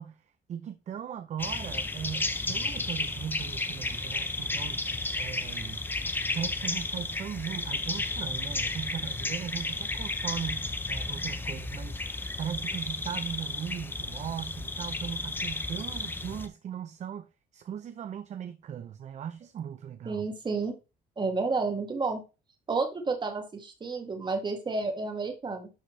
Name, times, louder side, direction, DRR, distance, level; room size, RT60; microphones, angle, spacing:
voice 1, 0.0-5.8 6.3-12.0 12.4-20.3, right 8 dB, 45° right, 0.6 m, -38 dB
sound 1, 1.4-16.5, left 2 dB, 10° left, 0.8 m, -33 dB
voice 2, 20.1-20.8 21.2-22.2 22.7-25.7, right 4 dB, 25° right, 2.0 m, -31 dB
11.5 x 4.1 x 3.2 m
cardioid pair, 110°, 17 cm